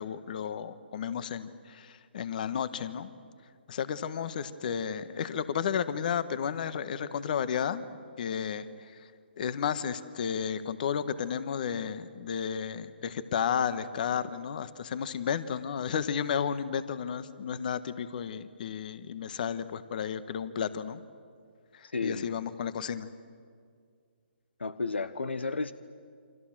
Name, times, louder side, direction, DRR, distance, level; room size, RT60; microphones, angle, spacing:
voice 1, 0.0-3.1 3.7-7.8 8.2-8.7 9.4-21.0 21.7-23.1, left 7 dB, 50° left, 13 dB, 1.4 m, -32 dB
voice 2, 21.9-22.3 24.6-25.7, left 4 dB, 80° left, 14 dB, 1.1 m, -32 dB
28.5 x 26.0 x 7.6 m, 2.1 s
figure-of-eight pair, 140°, 6 cm